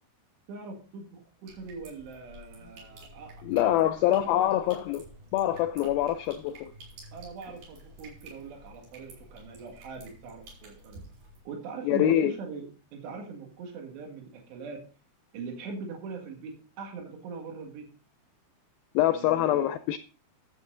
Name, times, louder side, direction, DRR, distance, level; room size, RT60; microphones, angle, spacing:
voice 1, 0.5-4.4 5.8-5.9 7.1-11.0 11.5-14.9 15.3-17.9 19.1-19.7, right 4 dB, 90° right, 4.0 m, -42 dB
sound 1, 1.5-11.4, right 1 dB, 65° right, 6.7 m, -51 dB
voice 2, 3.4-5.0 5.3-6.7 11.8-12.3 18.9-20.0, left 12 dB, 85° left, 2.1 m, -25 dB
14.0 x 7.7 x 3.8 m
omnidirectional pair, 4.8 m